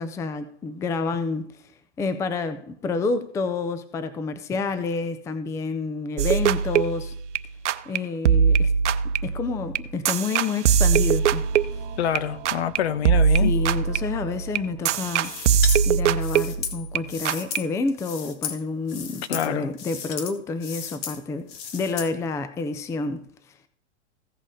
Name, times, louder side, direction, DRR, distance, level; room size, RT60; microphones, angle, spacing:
voice 1, 0.0-1.5 2.0-7.1 7.9-8.7 9.2-11.4 13.4-15.3 15.8-23.2, left 4 dB, 10° left, 0.5 m, -29 dB
sound 1, 6.2-8.0 8.2-12.8 13.0-17.0 17.2-17.6, right 7 dB, 75° right, 0.8 m, -22 dB
sound 2, 11.2-16.7, right 11 dB, 40° right, 1.0 m, -46 dB
voice 2, 12.0-13.5 19.3-19.7, left 10 dB, 65° left, 1.0 m, -26 dB
sound 3, 15.2-15.8 16.2-17.6 17.9-18.6 18.9-19.5 19.7-20.3 20.6-21.2 21.5-22.1, left 7 dB, 40° left, 1.7 m, -34 dB
16.0 x 5.3 x 4.9 m
hypercardioid pair, 135°, 35 cm